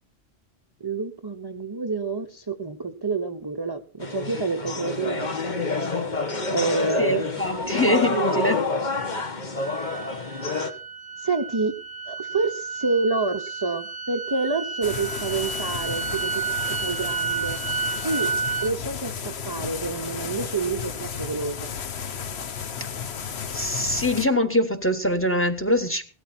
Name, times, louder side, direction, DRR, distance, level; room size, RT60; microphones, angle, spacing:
voice 1, 0.8-5.6 6.5-7.4 11.2-11.7 12.1-16.4 16.8-17.6 18.0-18.3 18.6-21.7, right 3 dB, 25° right, 6 dB, 0.8 m, -28 dB
sound 1, 4.0-10.7, left 3 dB, 45° left, 1.5 m, -28 dB
voice 2, 7.0-8.6 23.5-26.1, left 1 dB, 10° left, 9 dB, 1.2 m, -23 dB
sound 2, 9.6-18.7, right 6 dB, 80° right, 1.1 m, -31 dB
sound 3, 14.8-24.3, left 7 dB, 75° left, 1.2 m, -33 dB
17.0 x 13.0 x 4.3 m, 0.36 s
omnidirectional pair, 1.1 m